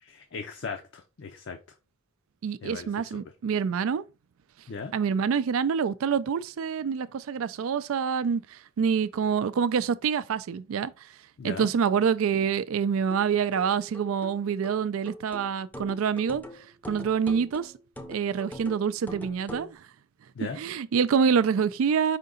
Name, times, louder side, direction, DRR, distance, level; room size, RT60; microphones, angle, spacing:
voice 1, 0.0-1.6 2.6-3.2 4.7-4.9 11.4-11.7 20.4-20.6, left 5 dB, 60° left, 0.5 m, -38 dB
voice 2, 2.4-4.0 4.9-10.9 11.4-16.4 16.9-17.7 18.1-19.8 20.4-22.2, right 6 dB, 80° right, 0.4 m, -26 dB
sound 1, 13.1-19.8, left 1 dB, 10° left, 0.5 m, -43 dB
5.0 x 2.8 x 3.7 m
head